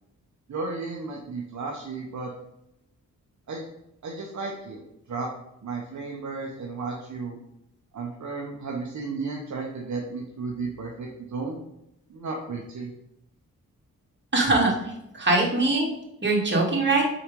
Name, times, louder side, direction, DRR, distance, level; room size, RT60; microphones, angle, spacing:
voice 1, 0.5-2.3 3.5-3.6 4.0-4.8 5.1-5.3 5.6-7.4 7.9-11.6 12.1-12.9, right 4 dB, 55° right, 0 dB, 1.1 m, -33 dB
voice 2, 14.3-14.7 15.1-15.9 16.2-17.0, right 2 dB, 30° right, -2 dB, 2.4 m, -21 dB
5.0 x 4.2 x 5.3 m, 0.85 s
cardioid pair, 55°, 35 cm